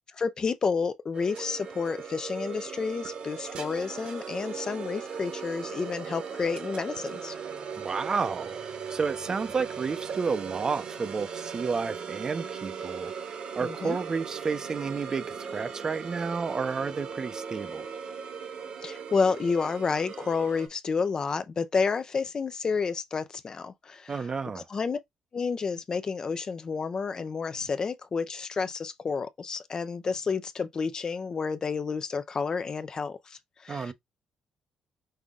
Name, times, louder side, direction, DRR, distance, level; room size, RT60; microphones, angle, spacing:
voice 1, 0.2-7.3 13.6-14.0 18.8-24.1 24.5-25.0 25.3-33.9, left 5 dB, 35° left, 0.5 m, -30 dB
sound 1, 1.1-20.7, right 6 dB, 55° right, 1.1 m, -38 dB
voice 2, 7.7-8.6 8.9-13.1 13.5-17.9 24.1-24.7 33.7-33.9, right 5 dB, 35° right, 0.6 m, -31 dB
5.4 x 2.3 x 3.7 m
cardioid pair, 105°, 2 cm